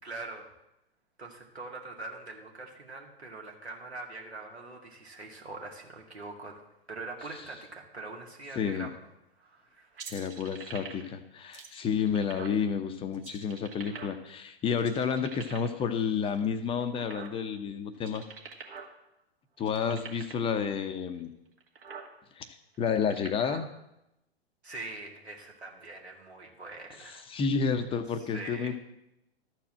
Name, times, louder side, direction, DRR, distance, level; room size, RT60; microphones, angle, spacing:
voice 1, 0.0-0.5 1.2-8.9 9.4-10.0 24.6-27.2 28.2-28.8, right 3 dB, 85° right, 0 dB, 2.2 m, -43 dB
voice 2, 8.6-8.9 10.1-18.2 19.6-21.3 22.4-23.7 27.0-28.7, left 6 dB, 15° left, 8 dB, 0.6 m, -30 dB
sound 1, 10.0-11.2 11.5-12.6 13.1-14.4 14.8-15.8 16.3-17.6 17.9-18.9 19.2-19.3 19.6-20.5 21.1-21.2 21.6-22.1 22.7-23.6, right 6 dB, 60° right, 2.0 m, -44 dB
13.0 x 4.5 x 7.4 m, 0.87 s
figure-of-eight pair, 105°, 32 cm